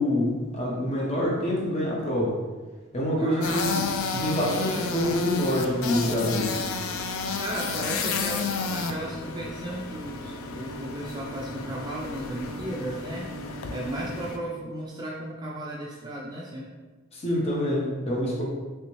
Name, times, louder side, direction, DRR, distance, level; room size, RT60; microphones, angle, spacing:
voice 1, 0.0-2.4 2.9-3.8 4.1-6.6 17.1-18.4, left 1 dB, 30° left, -3 dB, 0.6 m, -26 dB
voice 2, 3.2-3.6 4.7-4.9 5.9-6.6 7.4-13.3 13.7-16.6, right 1 dB, 20° right, -3 dB, 0.3 m, -35 dB
sound 1, 3.4-14.4, left 4 dB, 70° left, 0.3 m, -32 dB
Bowed string instrument, 10.2-14.8, left 1 dB, 50° left, 1.3 m, -42 dB
3.3 x 2.8 x 3.0 m, 1.3 s
head